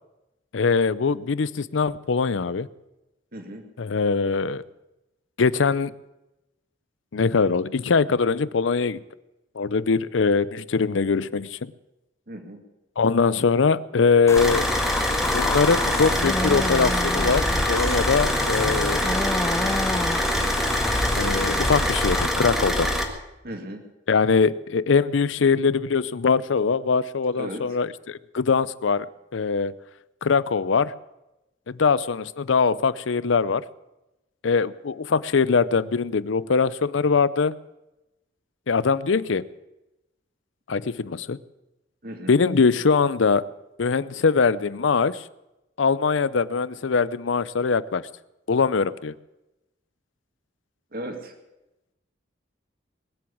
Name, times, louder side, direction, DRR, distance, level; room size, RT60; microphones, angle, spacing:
voice 1, 0.5-2.7 3.8-4.6 5.4-5.9 7.1-9.0 9.6-11.7 13.0-14.7 15.3-19.2 21.1-22.9 24.1-29.1 29.3-29.7 30.2-30.9 31.7-33.6 34.4-37.5 38.7-39.5 40.7-41.4 42.3-43.4 43.8-45.2 45.8-48.0 48.5-49.1, left 5 dB, 85° left, 18 dB, 0.6 m, -22 dB
voice 2, 3.3-3.6 12.3-12.6 23.4-23.8 27.3-27.8 42.0-42.3 50.9-51.3, right 1 dB, 50° right, 5 dB, 2.3 m, -36 dB
sound 1, 14.3-22.3, left 2 dB, 15° left, 0.5 m, -28 dB
Car / Idling, 14.4-23.0, equal, ahead, 1.7 m, -25 dB
21.0 x 7.8 x 8.5 m, 0.96 s
head